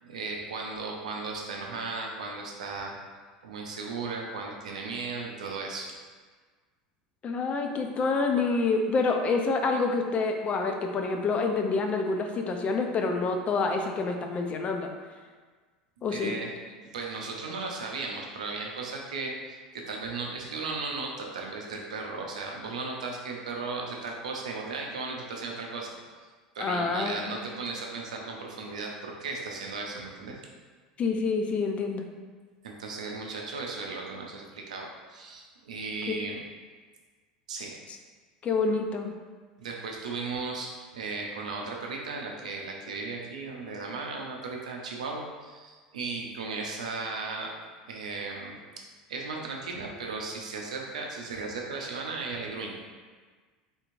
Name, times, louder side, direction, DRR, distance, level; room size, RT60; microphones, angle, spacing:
voice 1, 0.0-2.9 3.4-5.9 16.1-16.5 16.8-26.0 26.5-30.4 32.6-36.4 37.5-37.7 39.6-47.5 47.9-48.6 49.1-52.8, right 3 dB, 80° right, 0 dB, 0.5 m, -36 dB
voice 2, 7.2-14.9 16.0-16.3 26.6-27.4 31.0-32.1 36.1-36.2 38.4-39.1, left 4 dB, 35° left, 4 dB, 0.4 m, -27 dB
3.5 x 2.9 x 2.5 m, 1.5 s
hypercardioid pair, 80°, 4 cm